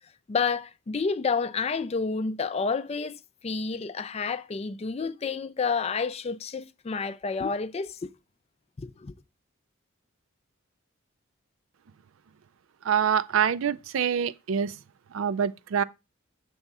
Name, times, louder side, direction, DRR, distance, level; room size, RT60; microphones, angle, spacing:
voice 1, 0.3-8.1 8.8-9.1, left 5 dB, 30° left, 0.4 m, -30 dB
voice 2, 12.8-14.8 15.1-15.8, right 8 dB, 80° right, 0.4 m, -25 dB
6.8 x 3.5 x 5.3 m
head